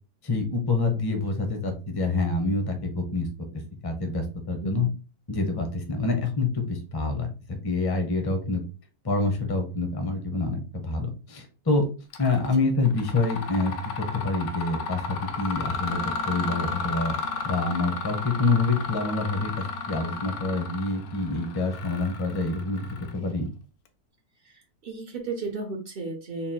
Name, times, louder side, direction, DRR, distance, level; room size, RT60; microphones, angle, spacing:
voice 1, 0.2-3.3 3.5-4.9 5.3-8.6 9.0-11.8 12.2-17.2 17.4-22.9 23.1-23.5, left 3 dB, 30° left, 4 dB, 0.4 m, -27 dB
voice 2, 4.6-4.9 24.4-26.5, right 3 dB, 65° right, 3 dB, 0.5 m, -34 dB
Mechanisms, 12.1-12.5 12.8-23.4, left 4 dB, 70° left, 1.0 m, -34 dB
3.8 x 2.3 x 4.1 m, 0.34 s
omnidirectional pair, 1.8 m